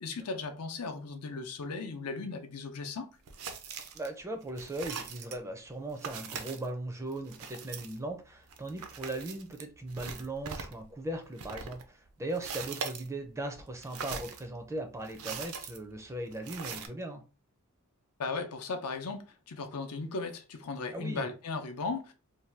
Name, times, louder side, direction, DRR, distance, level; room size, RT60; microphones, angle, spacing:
voice 1, 0.0-3.1 18.2-22.1, left 4 dB, 85° left, 0.6 m, -37 dB
sound 1, 3.3-4.1 4.4-5.4 6.0-6.7 7.1-10.8 11.1-13.1 13.4-16.9, right 6 dB, 70° right, 0.5 m, -42 dB
voice 2, 3.9-17.2 20.9-21.3, right 1 dB, 15° right, 0.4 m, -38 dB
2.7 x 2.2 x 3.2 m
head